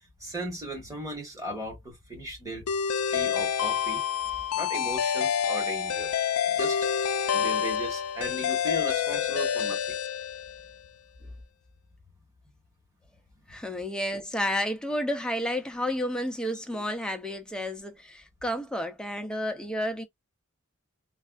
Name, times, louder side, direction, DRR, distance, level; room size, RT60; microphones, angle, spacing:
voice 1, 0.2-2.7 3.1-4.0 4.5-6.1 6.5-6.8 7.3-10.0 13.7-13.8, right 1 dB, 15° right, 1.5 m, -37 dB
sound 1, 2.7-10.8, left 8 dB, 75° left, 0.4 m, -28 dB
voice 2, 13.5-20.0, equal, 5° left, 0.5 m, -31 dB
3.3 x 2.3 x 2.3 m
head